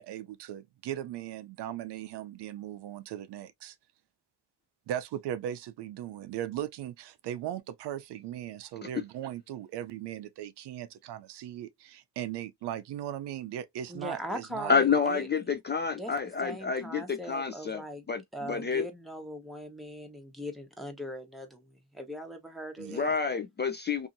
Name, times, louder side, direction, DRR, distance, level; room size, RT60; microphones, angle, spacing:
voice 1, 0.0-3.8 4.9-15.0 22.8-23.1, right 11 dB, 75° right, 0.6 m, -38 dB
voice 2, 13.9-15.3 15.9-16.1 16.4-18.0 18.3-23.1, equal, ahead, 0.9 m, -40 dB
voice 3, 14.7-17.8 18.1-18.9 22.9-24.1, left 5 dB, 25° left, 0.4 m, -28 dB
2.7 x 2.7 x 2.5 m
cardioid pair, 85°, 42 cm